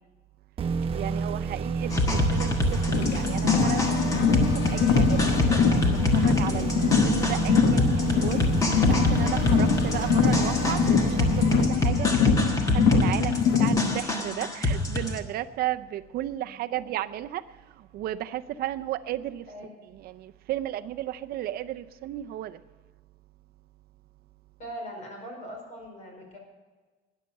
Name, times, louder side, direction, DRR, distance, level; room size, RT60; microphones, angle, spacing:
sound 1, 0.6-12.3, right 5 dB, 30° right, 0.9 m, -30 dB
voice 1, 0.9-2.6 3.0-8.4 8.9-12.1 12.4-17.4 17.9-19.4 20.1-22.6, right 13 dB, 60° right, 0.5 m, -34 dB
sound 2, 1.9-15.2, left 2 dB, 20° left, 1.4 m, -27 dB
Car, 2.9-14.0, left 6 dB, 80° left, 1.3 m, -24 dB
voice 2, 16.2-16.8 19.4-19.7 24.6-26.4, equal, 40° left, 4.9 m, -41 dB
13.0 x 10.0 x 6.4 m
cardioid pair, 170°, 18 cm